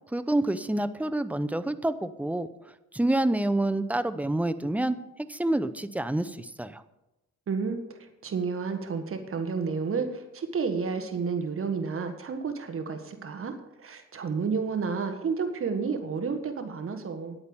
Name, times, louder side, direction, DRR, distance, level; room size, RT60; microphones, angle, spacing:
voice 1, 0.1-2.5 2.9-5.0 5.3-6.8, right 1 dB, 5° right, 11 dB, 0.7 m, -27 dB
voice 2, 7.5-17.4, right 5 dB, 45° right, 7 dB, 1.6 m, -31 dB
10.5 x 8.8 x 7.1 m, 0.96 s
cardioid pair, 90°, 30 cm